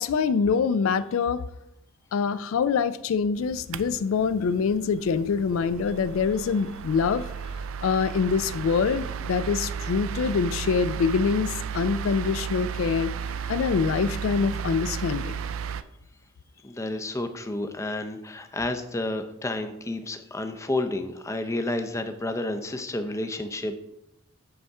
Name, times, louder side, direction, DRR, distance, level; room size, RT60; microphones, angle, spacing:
voice 1, 0.0-1.4 2.1-7.3 7.8-13.1 13.5-15.4, left 5 dB, 75° left, 14 dB, 0.3 m, -25 dB
sound 1, 3.3-15.8, right 7 dB, 80° right, 0.4 m, -34 dB
voice 2, 16.6-23.7, left 2 dB, 15° left, 6 dB, 0.5 m, -30 dB
7.8 x 3.5 x 5.5 m, 0.84 s
head